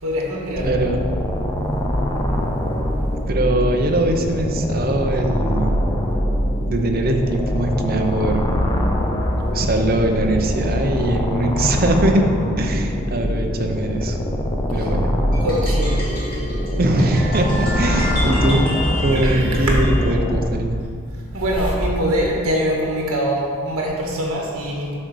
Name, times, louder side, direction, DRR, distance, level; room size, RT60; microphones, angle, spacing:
voice 1, 0.0-0.7 14.8-14.9 15.4-16.0 19.1-19.9 21.3-25.0, equal, 70° right, -2 dB, 1.8 m, -23 dB
sound 1, 0.6-20.5, equal, 15° left, 0.5 m, -23 dB
voice 2, 0.6-1.0 3.3-5.8 6.7-8.4 9.5-12.3 12.6-14.2 14.7-15.1 16.8-18.7 19.0-20.8, right 1 dB, 40° right, 3 dB, 0.7 m, -21 dB
sound 2, 15.3-20.1, left 1 dB, 40° left, 2.2 m, -30 dB
8.6 x 4.0 x 6.2 m, 2.2 s
head